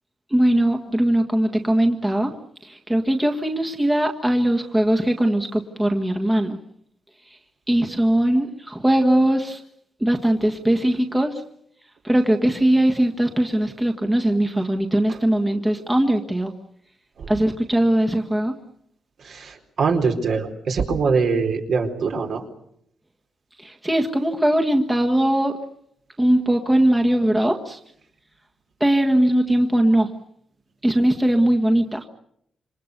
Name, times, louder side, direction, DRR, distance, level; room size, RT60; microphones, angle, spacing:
voice 1, 0.3-2.3 2.6-6.6 7.7-9.6 10.0-11.4 12.0-16.5 17.3-18.5 23.6-25.6 26.2-27.8 28.8-30.1 30.8-32.1, right 1 dB, 10° right, 3 dB, 1.7 m, -20 dB
voice 2, 19.2-22.4, right 5 dB, 65° right, 3 dB, 4.5 m, -23 dB
27.5 x 25.0 x 6.9 m, 0.72 s
wide cardioid pair, 150°, 0 cm